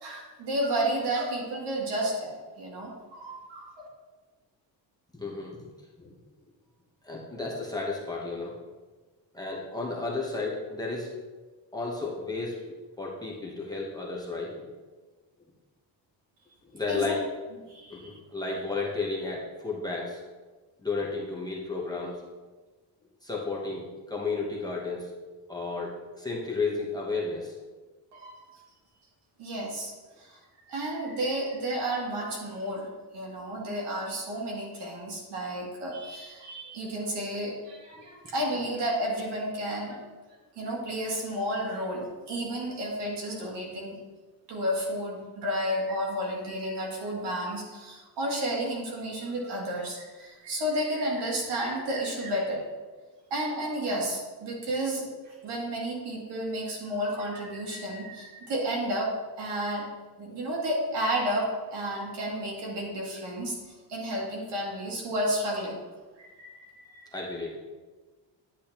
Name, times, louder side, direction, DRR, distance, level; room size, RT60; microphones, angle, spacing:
voice 1, 0.0-3.9 16.9-17.1 17.7-18.2 28.1-28.4 29.4-29.9 30.2-30.4 30.7-40.1 40.5-44.0 44.5-52.7 53.3-59.9 60.2-65.8 66.2-67.0, right 1 dB, 70° right, -3 dB, 2.6 m, -32 dB
voice 2, 5.1-5.6 6.0-6.1 7.0-8.5 9.3-11.1 11.7-12.6 13.0-14.7 16.7-17.2 17.9-20.2 20.8-22.2 23.2-25.1 25.5-27.5 67.1-67.6, left 3 dB, 10° left, -4 dB, 1.0 m, -33 dB
10.5 x 8.5 x 2.9 m, 1.3 s
cardioid pair, 170°, 43 cm